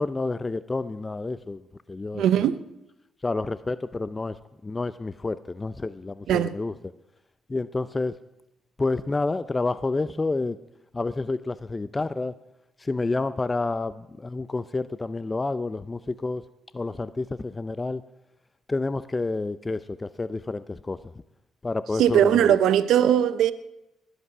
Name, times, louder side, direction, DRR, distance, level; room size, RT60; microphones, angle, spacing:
voice 1, 0.0-1.6 1.9-2.4 3.2-4.4 4.6-6.7 7.5-8.2 8.8-10.6 10.9-12.3 12.8-16.4 16.7-18.0 18.7-21.0 21.6-22.6, left 3 dB, 25° left, 0.5 m, -29 dB
voice 2, 2.1-2.6 6.3-6.5 22.0-23.5, right 10 dB, 80° right, 0.6 m, -20 dB
20.5 x 8.1 x 6.0 m
cardioid pair, 70°, 0 cm